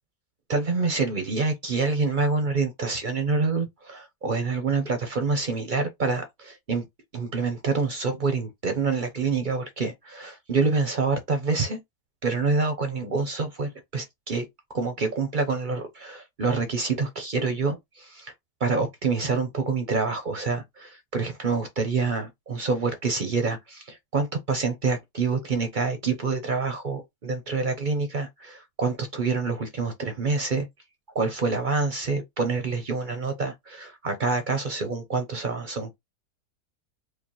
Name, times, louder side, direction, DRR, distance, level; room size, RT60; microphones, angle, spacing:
voice 1, 0.5-6.8 7.1-11.8 12.2-14.4 14.7-18.3 18.6-30.7 31.1-36.0, right 4 dB, 55° right, 0.5 m, -27 dB
4.9 x 2.2 x 2.9 m
omnidirectional pair, 1.8 m